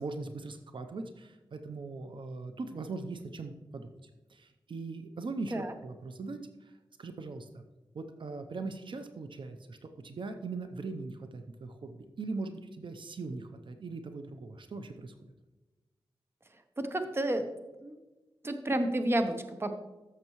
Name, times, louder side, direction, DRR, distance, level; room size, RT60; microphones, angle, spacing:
voice 1, 0.0-6.7 7.0-7.6 7.9-15.1, right 3 dB, 65° right, 7 dB, 0.7 m, -40 dB
voice 2, 16.8-17.5 17.8-18.0 18.4-19.8, right 1 dB, 25° right, 7 dB, 0.8 m, -30 dB
14.0 x 6.7 x 3.1 m, 1.1 s
wide cardioid pair, 100°, 9 cm